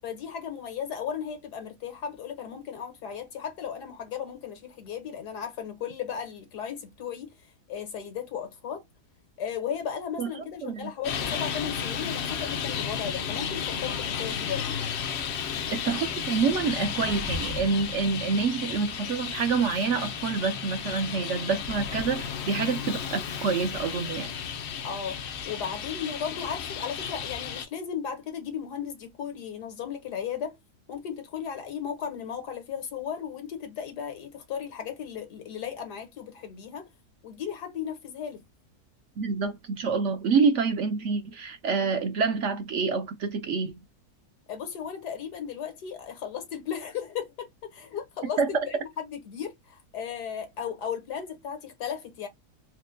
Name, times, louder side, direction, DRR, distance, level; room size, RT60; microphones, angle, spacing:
voice 1, 0.0-7.3 7.7-8.8 9.4-14.8 24.8-30.5 30.9-36.9 37.2-38.4 44.5-52.3, left 8 dB, 90° left, 1.8 m, -35 dB
Traffic noise roadway noise, 11.0-27.7, left 7 dB, 65° left, 0.6 m, -33 dB
voice 2, 15.8-24.3 39.2-43.8 48.4-48.5, right 5 dB, 65° right, 0.8 m, -27 dB
4.3 x 2.1 x 2.5 m
omnidirectional pair, 1.7 m